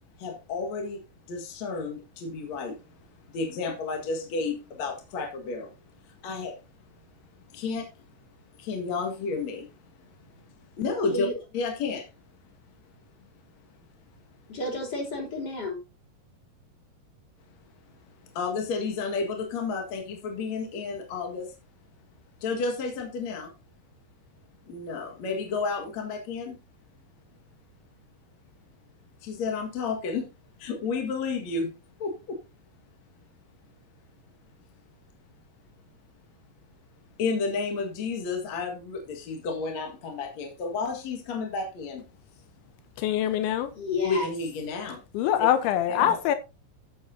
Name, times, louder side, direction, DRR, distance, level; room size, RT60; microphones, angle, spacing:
voice 1, 0.2-1.0 1.3-2.8 3.3-5.7 6.1-6.6 7.5-7.9 8.6-9.7 10.8-11.3 11.5-12.1 18.3-21.5 22.4-23.5 24.7-26.6 29.2-30.3 30.6-31.7 32.0-32.4 37.2-42.1 44.0-45.0 45.4-45.5 45.9-46.2, left 4 dB, 50° left, 2.3 m, -31 dB
voice 2, 14.5-15.8 43.7-44.3, left 3 dB, 25° left, 3.8 m, -31 dB
voice 3, 43.0-43.7 45.1-46.4, left 11 dB, 85° left, 3.2 m, -24 dB
13.5 x 8.1 x 2.8 m
omnidirectional pair, 5.2 m